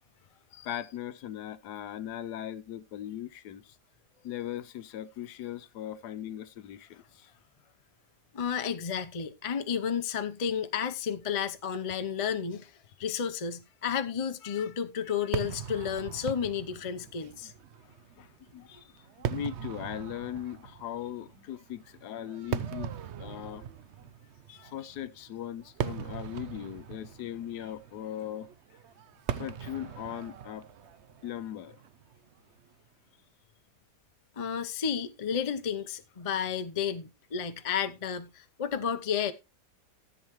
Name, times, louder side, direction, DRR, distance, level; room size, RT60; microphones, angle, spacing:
voice 1, 0.6-3.8 4.2-7.3 17.8-18.7 19.2-22.9 23.2-23.6 24.6-28.5 29.3-30.7 31.2-31.8, left 11 dB, 75° left, 1.3 m, -39 dB
voice 2, 8.3-12.7 13.0-17.5 18.7-18.8 24.5-24.7 34.4-39.3, left 7 dB, 40° left, 0.5 m, -32 dB
Fireworks, 15.3-32.7, right 9 dB, 65° right, 0.7 m, -40 dB
14.0 x 8.0 x 3.1 m
omnidirectional pair, 1.8 m